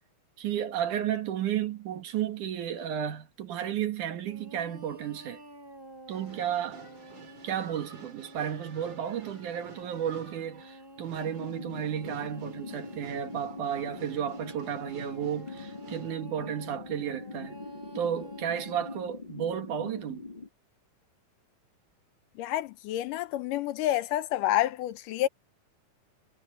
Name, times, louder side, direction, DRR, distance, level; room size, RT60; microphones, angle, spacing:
voice 1, 0.4-5.4 6.1-6.9 7.4-17.6 17.9-20.3, right 9 dB, 70° right, 3.1 m, -33 dB
sound 1, 4.3-19.0, right 1 dB, 15° right, 5.3 m, -50 dB
sound 2, 6.1-16.1, right 4 dB, 35° right, 3.7 m, -51 dB
sound 3, 11.2-20.5, left 4 dB, 25° left, 1.1 m, -43 dB
voice 2, 22.4-25.3, left 14 dB, 85° left, 2.5 m, -29 dB
omnidirectional pair, 3.7 m